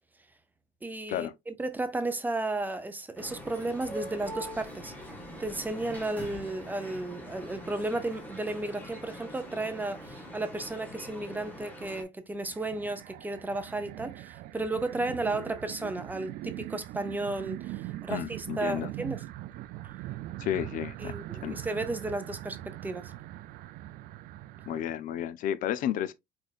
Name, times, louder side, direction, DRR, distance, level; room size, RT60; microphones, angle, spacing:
voice 1, 0.8-4.9 5.4-19.2 21.0-23.1, right 2 dB, 10° right, 0.5 m, -34 dB
sound 1, 3.2-12.0, equal, 10° left, 1.5 m, -43 dB
sound 2, 12.4-24.8, right 15 dB, 60° right, 0.4 m, -41 dB
voice 2, 18.1-18.9 20.4-21.1 21.4-21.6 24.7-26.1, left 11 dB, 55° left, 0.5 m, -32 dB
4.9 x 4.3 x 2.4 m
cardioid pair, 160°, 17 cm